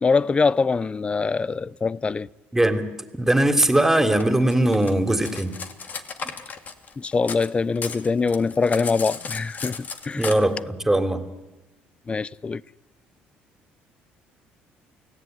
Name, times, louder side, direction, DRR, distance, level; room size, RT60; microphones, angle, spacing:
voice 1, 0.0-2.3 7.0-10.2 12.1-12.6, left 4 dB, 25° left, 0.8 m, -23 dB
voice 2, 2.5-2.9 3.1-5.6 10.2-11.3, right 1 dB, 10° right, 3.4 m, -20 dB
Cutlery silverware, 4.2-7.5 7.8-10.3, left 5 dB, 45° left, 2.6 m, -34 dB
29.0 x 18.0 x 9.5 m
supercardioid pair, 85°, 4 cm